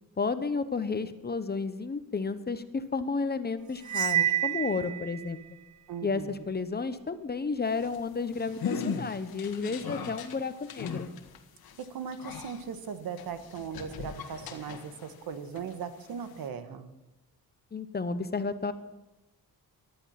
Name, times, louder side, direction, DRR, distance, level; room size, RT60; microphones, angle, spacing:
voice 1, 0.2-5.4 6.0-11.1 17.7-18.7, left 4 dB, 25° left, 12 dB, 0.9 m, -32 dB
Cymbal, 3.9-5.3, right 11 dB, 50° right, 0.6 m, -28 dB
voice 2, 5.9-6.4 11.8-16.9, right 6 dB, 75° right, 10 dB, 1.4 m, -38 dB
sound 1, 7.7-15.2 15.6-16.5, left 6 dB, 75° left, 1.5 m, -39 dB
15.0 x 11.5 x 5.7 m, 0.99 s
cardioid pair, 110°, 36 cm